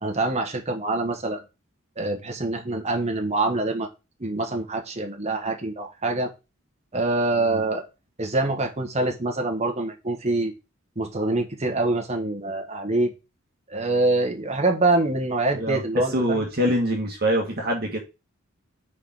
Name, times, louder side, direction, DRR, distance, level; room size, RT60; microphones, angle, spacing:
voice 1, 0.0-1.4 2.0-3.9 4.2-6.3 6.9-7.8 8.2-10.5 11.0-13.1 13.7-16.5, right 2 dB, 35° right, 3 dB, 1.4 m, -25 dB
voice 2, 15.5-18.0, equal, 50° right, 0 dB, 1.5 m, -25 dB
4.9 x 4.9 x 6.0 m, 0.27 s
head